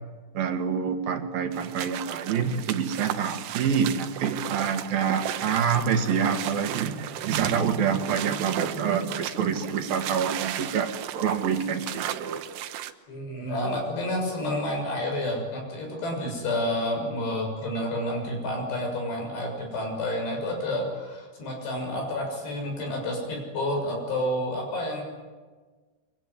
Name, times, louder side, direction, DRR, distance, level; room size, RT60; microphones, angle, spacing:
voice 1, 0.4-12.4, right 7 dB, 65° right, 6 dB, 3.5 m, -27 dB
sound 1, 1.5-12.9, right 12 dB, 85° right, 3.2 m, -35 dB
voice 2, 13.1-25.0, left 1 dB, 90° left, 2 dB, 8.9 m, -29 dB
25.0 x 24.5 x 9.8 m, 1.4 s
omnidirectional pair, 4.7 m